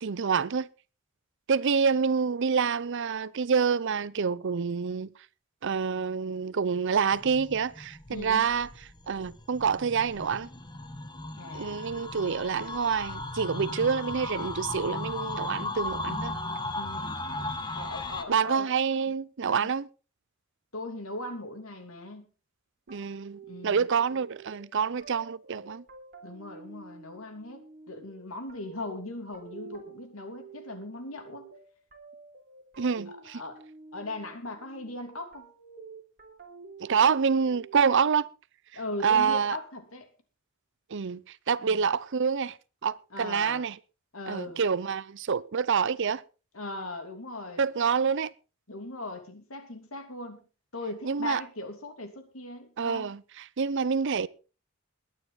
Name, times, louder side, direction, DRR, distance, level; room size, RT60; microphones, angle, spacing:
voice 1, 0.0-0.7 1.5-5.1 5.6-8.7 9.1-10.5 11.5-16.3 18.3-19.9 22.9-25.8 32.8-33.4 36.8-38.3 39.0-39.6 40.9-41.2 41.5-42.6 42.8-43.7 44.3-46.2 47.6-48.3 51.0-51.4 52.8-54.3, right 6 dB, 60° right, 0.6 m, -27 dB
sound 1, 7.1-18.2, left 2 dB, 20° left, 1.5 m, -36 dB
voice 2, 8.1-8.5 11.4-11.9 12.2-12.5 13.7-14.0 16.7-17.2 17.7-18.7 19.5-19.7 20.7-22.3 23.5-23.9 26.2-31.5 33.1-33.6 33.9-35.5 38.7-40.1 41.6-41.9 43.1-43.6 44.1-44.6 46.5-47.6 48.7-50.4 50.7-53.1, left 2 dB, 85° left, 3.0 m, -39 dB
sound 2, 22.9-38.2, right 4 dB, 45° right, 3.7 m, -50 dB
21.0 x 9.4 x 4.0 m
head